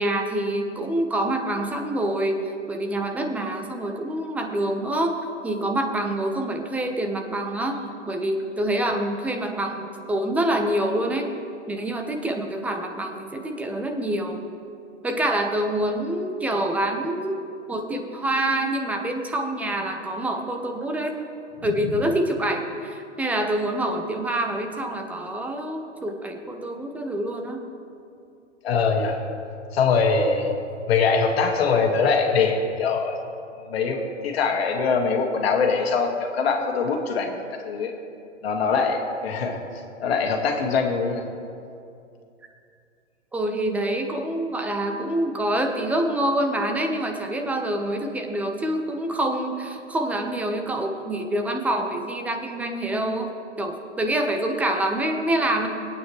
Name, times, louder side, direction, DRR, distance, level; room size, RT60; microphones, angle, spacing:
voice 1, 0.0-5.2 5.4-11.3 11.7-14.4 15.0-17.4 17.7-21.1 21.6-27.6 43.3-55.7, right 1 dB, 5° right, 4 dB, 0.5 m, -26 dB
voice 2, 28.6-29.2 29.7-30.5 30.9-33.2 33.7-37.9 38.4-39.6 40.0-41.2, left 5 dB, 55° left, 2 dB, 1.9 m, -23 dB
21.5 x 9.0 x 3.2 m, 2.5 s
hypercardioid pair, 125°, 37 cm